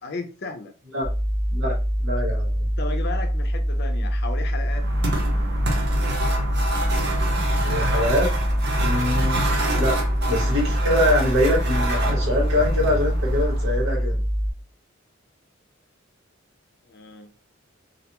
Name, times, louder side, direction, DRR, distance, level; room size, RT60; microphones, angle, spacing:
voice 1, 0.0-0.7 2.8-4.9 16.9-17.3, left 3 dB, 55° left, 0.5 m, -34 dB
sound 1, 1.0-14.5, equal, 10° right, 0.6 m, -24 dB
voice 2, 1.5-2.7 7.6-8.3 8.8-9.4 9.8-10.0 10.3-14.2, left 1 dB, 75° right, 1.1 m, -24 dB
sound 2, 4.7-14.0, right 1 dB, 55° right, 0.6 m, -28 dB
2.4 x 2.2 x 2.9 m
head